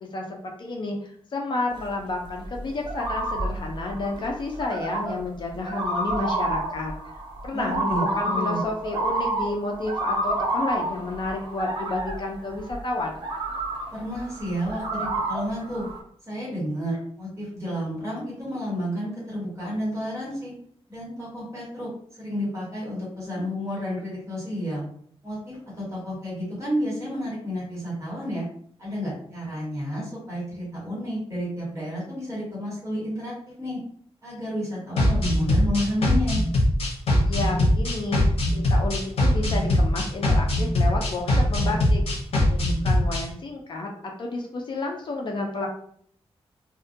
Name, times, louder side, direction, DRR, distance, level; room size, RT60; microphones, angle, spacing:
voice 1, 0.0-6.9 7.4-13.1 37.3-38.2 38.5-42.0 42.5-43.9 44.2-45.7, left 2 dB, 45° left, 1 dB, 0.4 m, -30 dB
sound 1, 1.8-16.0, right 2 dB, 45° right, 0.5 m, -30 dB
voice 2, 7.5-8.6 13.9-15.8 16.3-20.5 20.9-24.8 25.2-28.4 28.8-33.8 34.2-36.4, equal, 25° right, -7 dB, 1.0 m, -31 dB
sound 2, 35.0-43.2, left 1 dB, 65° left, 0.8 m, -22 dB
2.3 x 2.1 x 2.6 m, 0.62 s
wide cardioid pair, 175°, 11 cm